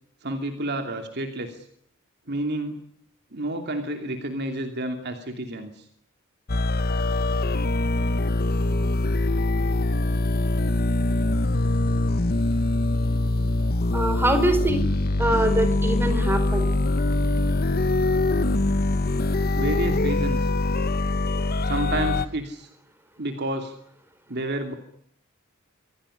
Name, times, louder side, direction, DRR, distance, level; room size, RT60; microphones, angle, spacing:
voice 1, 0.2-1.7 2.3-2.8 3.3-5.9 19.5-20.5 21.6-22.7 23.2-23.7 24.3-24.7, right 1 dB, 55° right, 5 dB, 2.8 m, -30 dB
sound 1, 6.5-22.3, left 2 dB, 45° left, 1.0 m, -23 dB
voice 2, 13.9-14.8 15.2-16.7, right 1 dB, 10° right, 8 dB, 4.5 m, -23 dB
26.0 x 17.0 x 9.9 m, 0.72 s
head